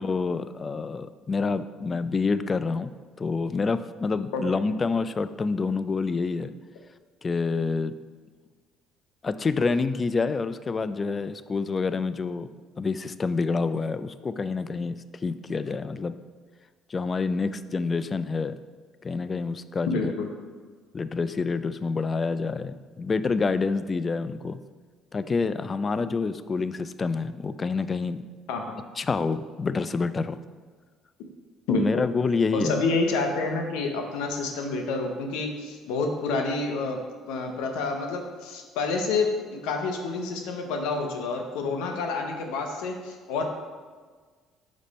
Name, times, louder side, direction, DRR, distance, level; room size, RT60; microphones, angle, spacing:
voice 1, 0.0-2.9 3.2-6.5 7.2-7.9 9.2-12.5 12.8-16.2 16.9-18.6 19.0-20.1 20.9-24.6 25.1-28.2 29.0-30.4 31.7-32.8, left 4 dB, 35° left, 13 dB, 0.3 m, -27 dB
voice 2, 19.9-20.3 28.5-28.7 31.7-31.9 32.5-37.0 37.3-43.4, left 3 dB, 80° left, 3 dB, 0.8 m, -28 dB
5.2 x 5.0 x 4.1 m, 1.5 s
hypercardioid pair, 65°, 0 cm